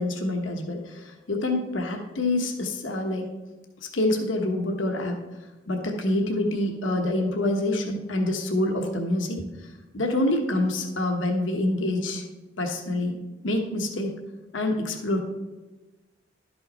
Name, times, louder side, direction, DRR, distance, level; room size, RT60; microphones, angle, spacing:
voice 1, 0.0-3.3 3.9-5.2 5.7-12.2 12.6-13.2 13.4-14.1 14.5-15.2, left 1 dB, 90° left, 3 dB, 1.1 m, -26 dB
12.0 x 5.6 x 4.2 m, 1.1 s
head